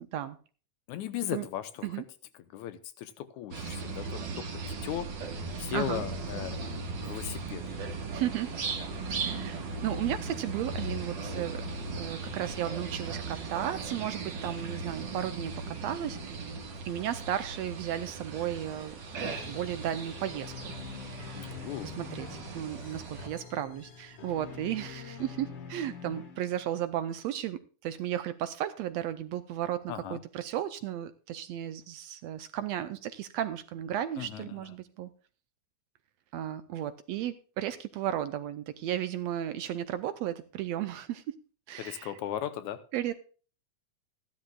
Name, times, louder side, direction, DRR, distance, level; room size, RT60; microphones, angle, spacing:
voice 1, 0.9-1.9 2.5-5.1 5.6-6.6 7.0-7.6 21.3-21.9 29.9-30.2 34.2-34.5 41.8-42.8, left 11 dB, 75° left, 2.2 m, -37 dB
sound 1, 3.5-23.3, right 3 dB, 45° right, 1.7 m, -38 dB
voice 2, 5.7-6.0 8.1-8.5 9.2-11.6 12.0-16.5 16.8-35.1 36.3-41.4 41.7-42.2 42.9-43.1, right 11 dB, 80° right, 1.6 m, -35 dB
sound 2, 19.2-26.8, left 6 dB, 50° left, 2.3 m, -46 dB
15.5 x 11.5 x 2.3 m
omnidirectional pair, 3.6 m